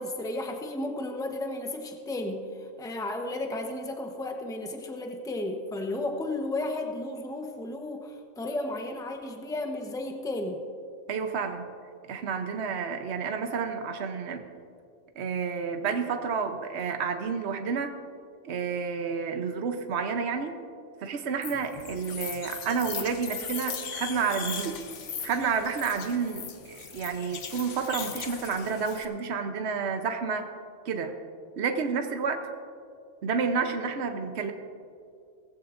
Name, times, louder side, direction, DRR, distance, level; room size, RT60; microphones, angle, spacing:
voice 1, 0.0-10.6, left 2 dB, 5° left, 3 dB, 0.9 m, -33 dB
voice 2, 11.1-11.7 12.1-14.5 15.2-17.9 18.4-20.6 21.0-24.8 25.2-30.5 30.8-31.2 31.6-32.5 33.2-34.5, right 5 dB, 65° right, 6 dB, 1.1 m, -30 dB
sound 1, 21.4-29.0, left 6 dB, 75° left, 1.2 m, -38 dB
18.0 x 15.0 x 2.6 m, 2.4 s
omnidirectional pair, 1.2 m